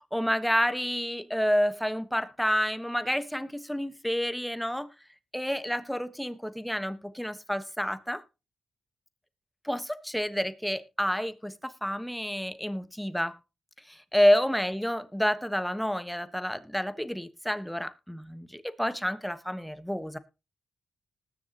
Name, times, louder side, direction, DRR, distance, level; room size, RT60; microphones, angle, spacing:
voice 1, 0.1-4.9 5.3-8.2 9.6-13.4 13.9-20.2, equal, ahead, 1.2 m, -29 dB
20.0 x 7.2 x 2.9 m
cardioid pair, 75°, 0 cm